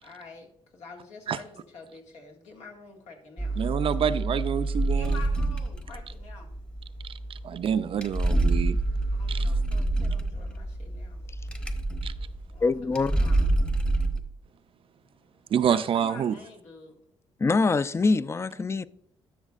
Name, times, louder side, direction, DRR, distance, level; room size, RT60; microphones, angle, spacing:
voice 1, 0.0-3.6 4.9-6.6 9.1-11.3 12.5-13.6 15.7-17.0, left 4 dB, 85° left, 1.9 m, -47 dB
sound 1, 3.4-14.2, right 2 dB, 10° left, 0.9 m, -27 dB
voice 2, 3.6-5.2 7.4-8.8 9.3-9.5 12.0-12.1 15.5-16.3, right 8 dB, 55° right, 0.4 m, -27 dB
voice 3, 12.6-13.2 17.4-18.8, left 3 dB, 25° left, 0.4 m, -24 dB
12.0 x 6.2 x 2.4 m
cardioid pair, 85°, 11 cm